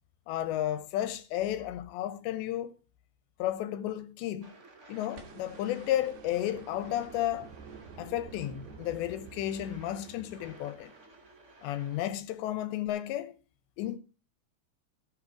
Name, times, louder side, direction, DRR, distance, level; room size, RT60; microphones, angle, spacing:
voice 1, 0.3-2.7 3.4-4.5 4.9-7.5 8.0-10.9 11.6-13.4 13.8-14.0, left 12 dB, 80° left, 3.0 m, -33 dB
sound 1, 4.4-12.1, right 2 dB, 50° right, 0.8 m, -56 dB
sound 2, 5.2-11.3 12.9-13.0, right 5 dB, 65° right, 4.2 m, -49 dB
15.5 x 11.0 x 5.0 m
omnidirectional pair, 5.2 m